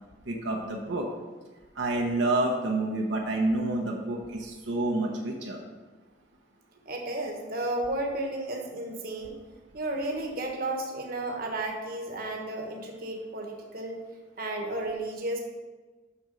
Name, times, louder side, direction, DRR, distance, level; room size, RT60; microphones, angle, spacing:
voice 1, 0.3-1.1 1.8-5.6, right 2 dB, 80° right, 0 dB, 1.0 m, -28 dB
voice 2, 6.8-9.3 9.7-14.0 14.4-15.4, right 2 dB, 50° right, 1 dB, 1.3 m, -33 dB
7.0 x 6.1 x 5.1 m, 1.3 s
head